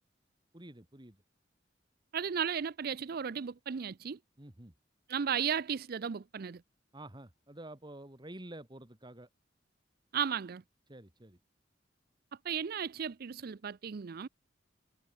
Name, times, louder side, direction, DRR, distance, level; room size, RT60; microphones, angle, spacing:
voice 1, 0.5-1.2 4.4-4.7 6.9-9.3 10.9-11.4, right 1 dB, 25° right, 2.2 m, -49 dB
voice 2, 2.1-4.2 5.1-6.6 10.1-10.6 12.4-14.3, right 7 dB, 55° right, 0.5 m, -35 dB
head